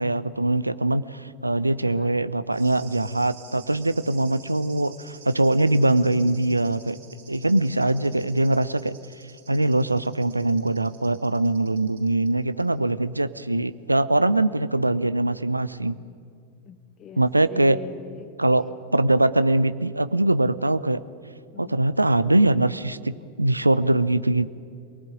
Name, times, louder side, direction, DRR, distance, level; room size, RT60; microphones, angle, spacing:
voice 1, 0.0-7.0 7.3-8.9 9.5-16.0 17.2-17.8 18.4-18.6 18.9-21.0 21.6-24.5, right 2 dB, 85° right, 15 dB, 0.7 m, -22 dB
voice 2, 1.8-2.2 5.8-6.3 7.7-8.3 14.9-15.1 16.6-18.3 21.5-21.8, left 8 dB, 30° left, 9 dB, 1.4 m, -43 dB
sound 1, 2.5-12.3 12.6-12.7, right 7 dB, 55° right, 7.6 m, -50 dB
27.5 x 19.0 x 9.3 m, 2.3 s
figure-of-eight pair, 90°, 0 cm